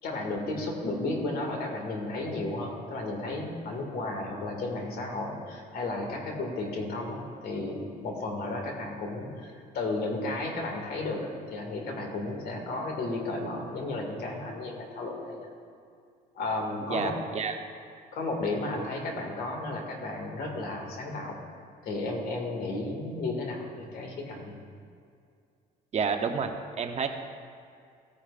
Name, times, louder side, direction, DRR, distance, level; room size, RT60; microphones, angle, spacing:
voice 1, 0.0-15.5 16.4-17.2 18.1-21.4 21.8-24.5, left 2 dB, 65° left, 1 dB, 2.1 m, -33 dB
voice 2, 16.9-17.5 25.9-26.5 26.8-27.1, right 6 dB, 40° right, 5 dB, 0.8 m, -29 dB
16.0 x 9.8 x 2.5 m, 2.3 s
cardioid pair, 110°, 17 cm